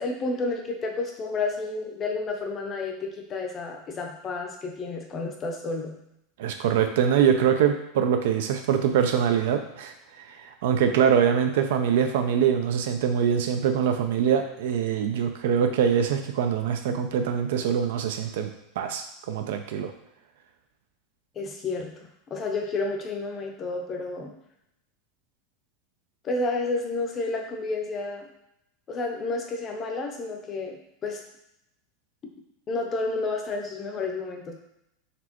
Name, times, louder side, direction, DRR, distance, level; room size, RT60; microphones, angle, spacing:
voice 1, 0.0-6.0 21.4-21.9 22.3-24.3 26.2-28.3 28.9-30.8 31.0-31.2 32.7-34.5, left 3 dB, 25° left, 2 dB, 0.6 m, -30 dB
voice 2, 6.4-18.5 18.8-19.9, right 8 dB, 75° right, 6 dB, 0.5 m, -24 dB
4.2 x 3.3 x 3.0 m, 0.83 s
supercardioid pair, 155°, 0 cm